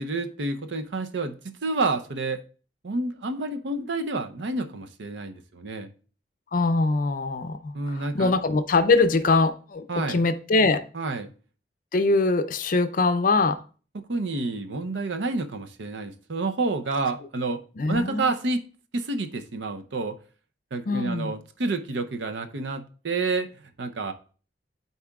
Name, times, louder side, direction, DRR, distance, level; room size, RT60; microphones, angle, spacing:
voice 1, 0.0-1.4 1.6-2.4 2.8-5.9 7.7-8.3 9.9-10.2 10.9-11.3 14.1-17.6 17.9-18.6 18.9-20.2 20.7-23.5 23.8-24.1, right 3 dB, 85° right, 0.7 m, -29 dB
voice 2, 6.5-10.9 11.9-13.6 17.8-18.3 20.9-21.3, left 3 dB, 50° left, 0.5 m, -23 dB
12.0 x 4.2 x 2.3 m
head